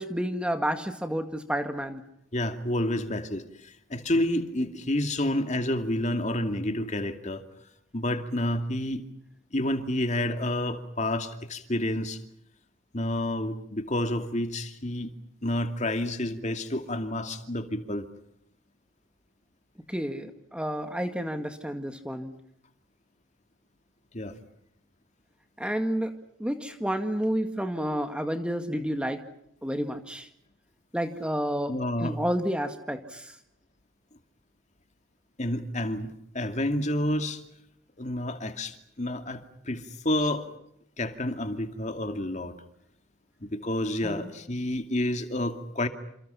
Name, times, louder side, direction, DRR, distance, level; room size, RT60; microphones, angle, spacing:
voice 1, 0.0-2.0 19.9-22.3 25.6-26.1 26.4-29.2 29.6-30.3 30.9-31.7 32.0-33.3 44.0-44.3, equal, 5° right, 7 dB, 1.9 m, -30 dB
voice 2, 2.3-7.4 7.9-9.0 9.5-12.2 12.9-15.1 15.4-18.1 24.1-24.3 31.7-32.2 35.4-37.4 38.0-40.5 41.0-42.5 43.4-45.9, left 1 dB, 35° left, 7 dB, 2.5 m, -29 dB
29.5 x 28.0 x 5.8 m, 0.73 s
head